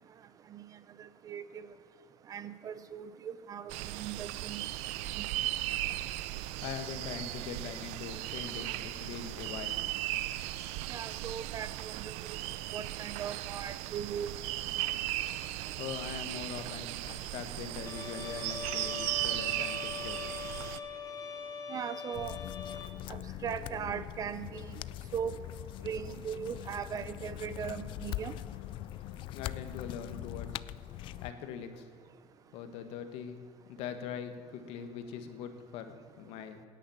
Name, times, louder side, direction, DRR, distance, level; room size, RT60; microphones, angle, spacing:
voice 1, 1.0-1.7 2.3-4.7 5.1-5.3 10.9-12.4 12.7-14.6 21.7-22.4 23.1-24.8 25.1-25.4 25.8-28.4, right 8 dB, 30° right, 14 dB, 0.7 m, -39 dB
sound 1, 3.7-20.8, right 15 dB, 75° right, 0.6 m, -37 dB
voice 2, 6.6-9.8 15.8-20.3 29.3-30.6 31.2-31.9 32.5-33.4 33.7-36.6, left 7 dB, 65° left, 8 dB, 1.7 m, -42 dB
Bowed string instrument, 17.9-22.9, left 6 dB, 35° left, 1.4 m, -42 dB
sound 2, 22.1-31.3, left 14 dB, 50° left, 0.4 m, -42 dB
17.0 x 10.0 x 7.3 m, 2.3 s
cardioid pair, 160°, 11 cm